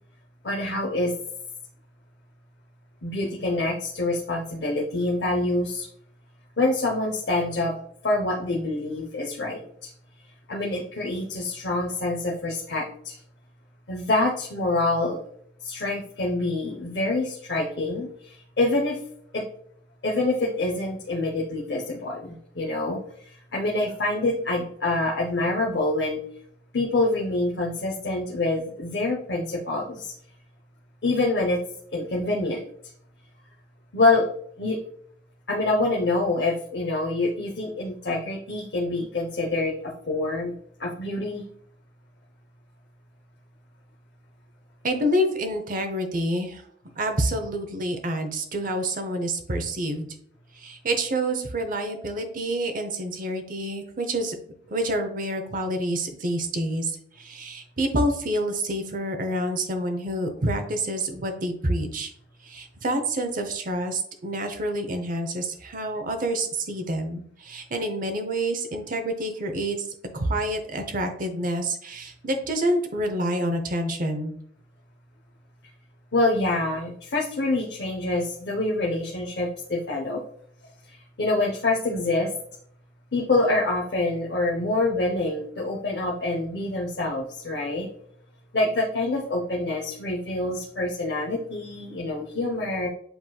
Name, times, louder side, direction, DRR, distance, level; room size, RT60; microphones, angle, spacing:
voice 1, 0.4-1.1 3.0-5.9 6.6-7.7 8.0-9.9 10.5-13.2 13.9-15.2 15.6-19.0 19.3-19.4 20.0-23.0 23.2-26.2 26.7-30.1 31.0-31.6 31.9-32.7 33.9-34.3 34.6-34.8 35.5-40.5 40.8-41.4 76.1-80.2 80.9-82.3 83.1-87.9 88.5-92.9, left 2 dB, 65° left, -2 dB, 0.7 m, -26 dB
voice 2, 44.8-46.6 47.0-50.1 50.6-54.3 54.7-62.1 62.4-69.9 70.1-74.3, right 1 dB, 50° right, 6 dB, 0.7 m, -28 dB
7.8 x 3.0 x 2.3 m, 0.65 s
head